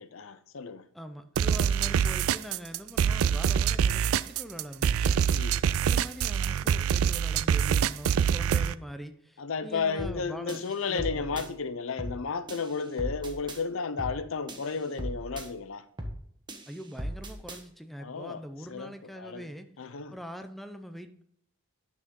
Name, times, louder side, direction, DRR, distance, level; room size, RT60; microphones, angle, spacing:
voice 1, 0.0-0.8 5.3-5.6 9.4-15.8 18.0-18.4 18.7-18.9 19.2-19.5 19.8-20.1, left 5 dB, 70° left, 0.6 m, -33 dB
voice 2, 0.9-5.2 5.8-11.5 16.7-19.7 20.1-21.2, equal, ahead, 0.6 m, -43 dB
sound 1, 1.3-8.7, right 8 dB, 90° right, 0.3 m, -25 dB
sound 2, 10.0-10.2 10.5-11.5 12.0-12.2 12.5-13.6 14.0-14.2 14.5-15.5 16.0-16.2 16.5-17.6, equal, 20° right, 1.1 m, -38 dB
10.0 x 6.3 x 3.8 m
head